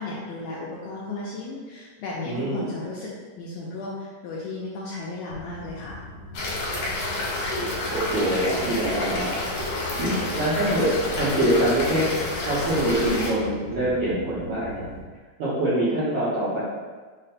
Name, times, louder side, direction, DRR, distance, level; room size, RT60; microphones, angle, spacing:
voice 1, 0.0-6.0, left 2 dB, 85° left, -5 dB, 1.8 m, -34 dB
voice 2, 2.2-2.7 7.9-9.4 10.0-12.1 12.4-14.9 15.4-16.6, right 1 dB, 75° right, -11 dB, 1.3 m, -24 dB
sound 1, 5.3-15.0, left 1 dB, 60° right, 2.2 m, -41 dB
sound 2, 6.3-13.3, left 2 dB, 65° left, 2.3 m, -29 dB
5.8 x 2.2 x 4.0 m, 1.4 s
omnidirectional pair, 4.0 m